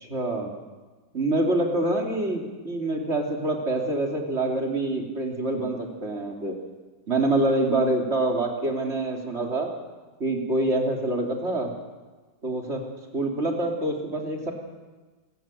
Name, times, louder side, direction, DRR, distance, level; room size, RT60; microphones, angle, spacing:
voice 1, 0.0-0.5 1.1-6.6 7.1-9.7 10.2-11.7 12.4-12.8 13.1-14.5, right 2 dB, 35° right, 1 dB, 3.5 m, -26 dB
26.0 x 14.0 x 9.1 m, 1.3 s
omnidirectional pair, 1.9 m